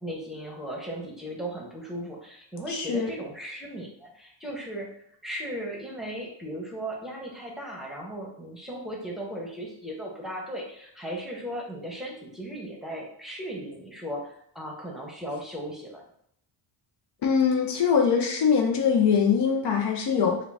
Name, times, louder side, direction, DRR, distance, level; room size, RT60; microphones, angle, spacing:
voice 1, 0.0-16.0, equal, ahead, -2 dB, 0.9 m, -37 dB
voice 2, 2.7-3.1 17.2-20.4, left 6 dB, 55° left, 1 dB, 0.6 m, -23 dB
3.7 x 2.3 x 3.4 m, 0.69 s
cardioid pair, 95°, 49 cm